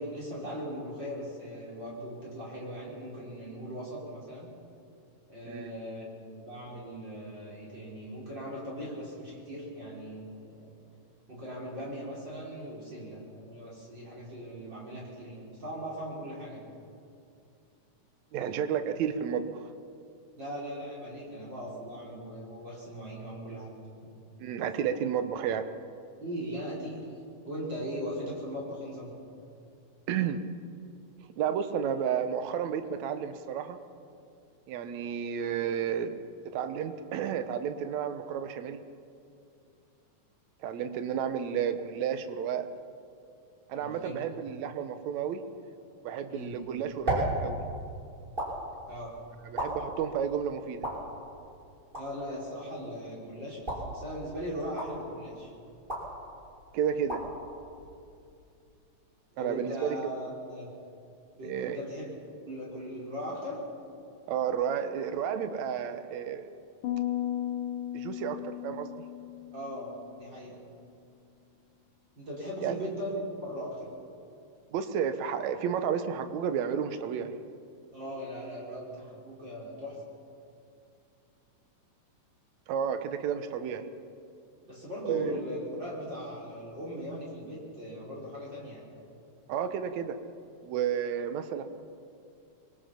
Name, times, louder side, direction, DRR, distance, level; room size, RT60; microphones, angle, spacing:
voice 1, 0.0-4.5 5.3-10.7 11.3-16.7 20.4-23.7 24.0-24.1 26.2-27.1 27.4-29.1 43.8-44.2 46.3-46.6 48.9-49.1 52.0-53.6 53.9-55.5 59.4-60.7 61.4-62.1 62.5-63.6 69.5-70.6 72.1-73.9 77.9-80.0 84.6-88.9, equal, 30° right, -5 dB, 5.7 m, -39 dB
voice 2, 18.3-19.7 24.4-25.7 30.1-30.4 31.4-33.8 34.7-36.2 36.4-38.8 40.6-42.7 43.7-45.4 46.0-47.6 49.5-50.9 56.7-57.2 59.4-59.9 61.4-61.8 64.3-66.5 67.9-69.0 72.6-72.8 74.7-77.4 82.7-83.9 85.0-85.3 89.5-90.2 90.6-91.7, right 8 dB, 65° right, 9 dB, 2.1 m, -31 dB
sound 1, 46.4-58.6, right 1 dB, 15° right, 5.7 m, -38 dB
sound 2, 66.8-70.2, left 12 dB, 75° left, 2.7 m, -35 dB
24.0 x 22.5 x 5.9 m, 2.5 s
omnidirectional pair, 3.8 m